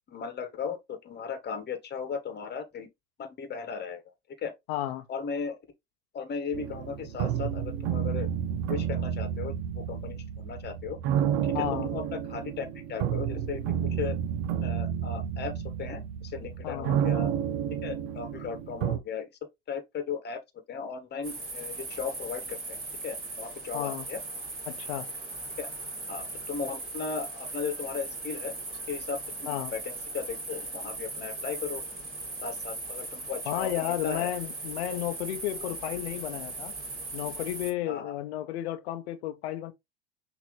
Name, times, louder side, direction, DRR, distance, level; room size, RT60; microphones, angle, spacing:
voice 1, 0.1-2.9 3.2-4.0 4.4-4.5 5.1-5.6 6.1-8.3 8.7-11.0 11.5-13.6 13.9-14.2 14.6-17.3 17.8-19.3 19.7-20.4 20.7-22.8 23.0-24.2 25.6-25.7 26.1-31.8 32.4-34.3 37.9-38.1, left 6 dB, 30° left, 1.3 m, -36 dB
voice 2, 4.7-5.1 11.5-11.9 16.6-17.0 23.7-24.1 24.7-25.1 29.5-29.7 33.5-36.7 37.1-39.7, left 13 dB, 80° left, 0.7 m, -33 dB
sound 1, 6.5-19.0, right 9 dB, 70° right, 1.0 m, -31 dB
sound 2, 21.2-37.7, right 2 dB, 30° right, 3.3 m, -38 dB
5.9 x 2.9 x 3.1 m
hypercardioid pair, 95°, 32 cm